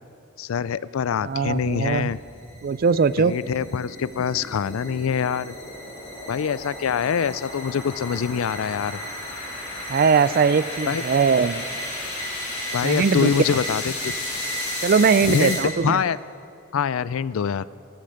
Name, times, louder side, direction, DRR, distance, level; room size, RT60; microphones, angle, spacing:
voice 1, 0.4-2.2 3.2-5.5 6.3-9.0 10.8-11.0 12.7-14.1 15.2-16.2 16.7-17.7, left 7 dB, 85° left, 18 dB, 0.4 m, -25 dB
sound 1, 1.2-16.0, left 1 dB, 40° left, 4.7 m, -33 dB
voice 2, 1.2-2.1 2.6-3.3 9.9-11.6 12.8-13.3 14.8-16.0, right 5 dB, 45° right, 17 dB, 0.4 m, -20 dB
14.0 x 13.5 x 6.5 m, 2.4 s
head